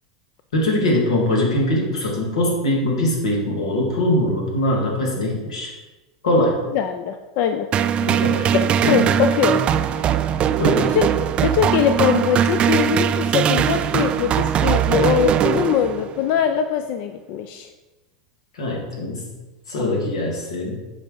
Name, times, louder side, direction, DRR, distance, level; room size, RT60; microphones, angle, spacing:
voice 1, 0.5-5.7 6.2-6.7 8.0-8.5 8.8-9.1 10.6-10.9 18.5-19.2 19.7-20.8, left 1 dB, 90° left, -1 dB, 2.0 m, -22 dB
voice 2, 6.4-7.7 8.5-9.6 9.9-10.2 10.8-11.1 11.4-17.7 19.8-20.0, left 9 dB, 55° left, 7 dB, 0.5 m, -22 dB
sound 1, 7.7-16.2, right 9 dB, 35° right, 0.3 m, -20 dB
8.2 x 4.8 x 3.9 m, 1.2 s
hypercardioid pair, 110°, 3 cm